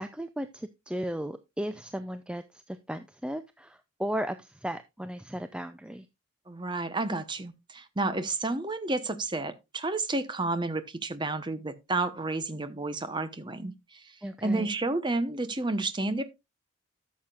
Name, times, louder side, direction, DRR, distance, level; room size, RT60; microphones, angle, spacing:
voice 1, 0.0-6.1 14.2-14.7, equal, 5° right, 0.4 m, -35 dB
voice 2, 6.5-14.1 14.4-16.2, right 2 dB, 20° right, 1.0 m, -31 dB
13.0 x 7.3 x 2.4 m
head